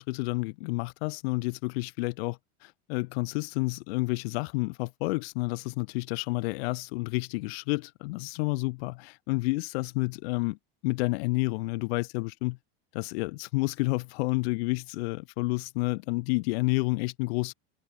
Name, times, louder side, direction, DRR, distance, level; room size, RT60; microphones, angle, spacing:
voice 1, 0.0-10.6 10.8-12.6 12.9-17.5, left 25 dB, 70° left, 1.0 m, -30 dB
open air
supercardioid pair, 140°, 31 cm